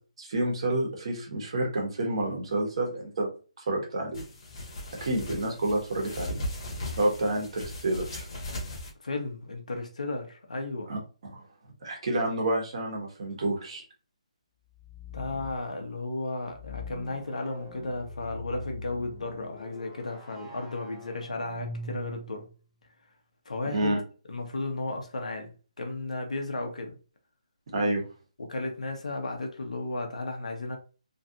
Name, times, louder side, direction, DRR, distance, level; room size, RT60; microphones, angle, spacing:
voice 1, 0.2-3.3 3.6-4.2 5.0-6.4 7.0-8.3 10.9-11.4 11.8-13.8 23.7-24.0 27.7-28.0, right 1 dB, 50° right, 1.2 m, -29 dB
sound 1, 4.1-8.9, left 1 dB, 40° left, 1.2 m, -38 dB
voice 2, 9.0-10.9 15.1-22.5 23.4-24.0 24.3-25.5 25.8-27.0 28.4-30.8, left 2 dB, 80° left, 1.0 m, -34 dB
sound 2, 14.7-15.6 16.5-22.5, left 2 dB, 10° left, 0.6 m, -42 dB
3.1 x 2.5 x 2.8 m
hypercardioid pair, 165°, 4 cm